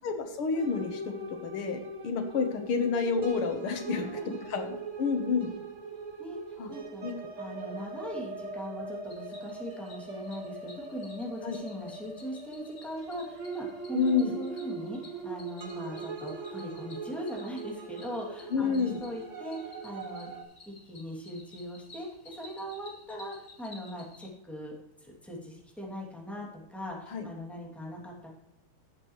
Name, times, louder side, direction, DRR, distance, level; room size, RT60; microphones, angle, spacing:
voice 1, 0.0-1.0 1.3-4.1 4.5-5.5 6.6-6.7 7.0-7.1 11.4-11.6 13.9-14.3 18.5-19.0 27.1-27.3, left 5 dB, 85° left, 6 dB, 2.2 m, -29 dB
sound 1, 0.5-20.4, right 3 dB, 40° right, 1.5 m, -41 dB
voice 2, 3.9-4.4 6.2-7.1 7.4-20.3 20.7-24.7 25.0-28.3, equal, ahead, -3 dB, 2.6 m, -40 dB
Cricket, 9.1-24.3, left 2 dB, 65° left, 3.5 m, -54 dB
17.0 x 7.5 x 3.2 m, 0.90 s
omnidirectional pair, 2.3 m